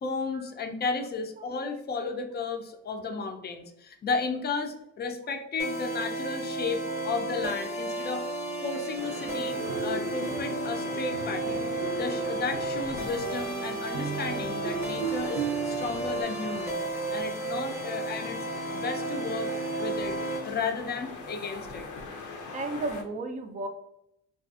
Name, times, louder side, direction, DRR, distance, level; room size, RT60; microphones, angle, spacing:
voice 1, 0.0-8.2 8.6-11.7 12.0-16.8 17.1-18.5 18.7-19.5 19.8-20.2 20.4-21.9, left 4 dB, 35° left, 6 dB, 0.4 m, -33 dB
sound 1, 5.6-20.4, right 2 dB, 10° right, 0.7 m, -33 dB
sound 2, 9.0-23.0, left 4 dB, 75° left, 0.6 m, -42 dB
sound 3, 9.6-16.2, right 5 dB, 80° right, 0.5 m, -36 dB
voice 2, 22.5-23.7, right 2 dB, 25° right, 6 dB, 0.4 m, -34 dB
2.5 x 2.3 x 2.3 m, 0.79 s
cardioid pair, 90°, 30 cm